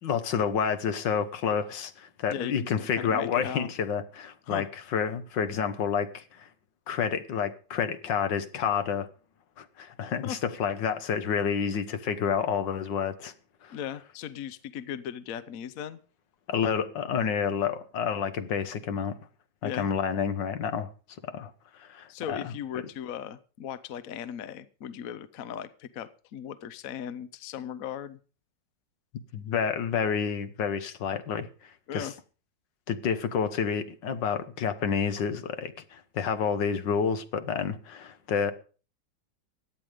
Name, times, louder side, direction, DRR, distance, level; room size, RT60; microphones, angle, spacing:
voice 1, 0.0-6.5 6.9-9.1 9.6-13.3 13.6-13.8 16.5-19.2 19.6-20.9 21.3-21.5 21.8-22.5 29.3-32.1 32.9-38.5, left 7 dB, 75° left, 1.8 m, -29 dB
voice 2, 2.3-3.7 4.5-4.7 10.2-10.4 13.7-16.0 19.6-19.9 22.1-28.2 31.9-32.1, left 9 dB, 60° left, 1.1 m, -37 dB
16.5 x 11.0 x 5.0 m
omnidirectional pair, 2.0 m